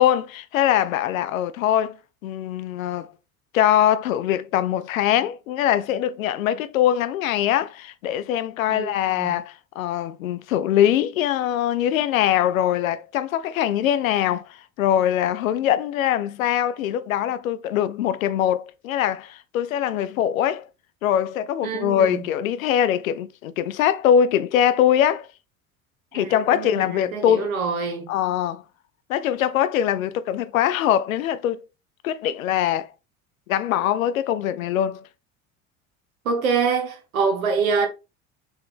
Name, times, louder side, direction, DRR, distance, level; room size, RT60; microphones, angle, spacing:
voice 1, 0.0-2.0 2.2-3.1 3.5-20.7 21.0-25.3 26.1-27.5 28.1-28.6 29.1-31.7 32.0-32.9 33.5-35.0, left 10 dB, 80° left, 0.5 m, -22 dB
voice 2, 8.7-9.4 21.6-22.3 26.1-28.1 36.2-37.9, right 5 dB, 80° right, 1.3 m, -25 dB
3.9 x 3.9 x 3.4 m
figure-of-eight pair, 65°, 41 cm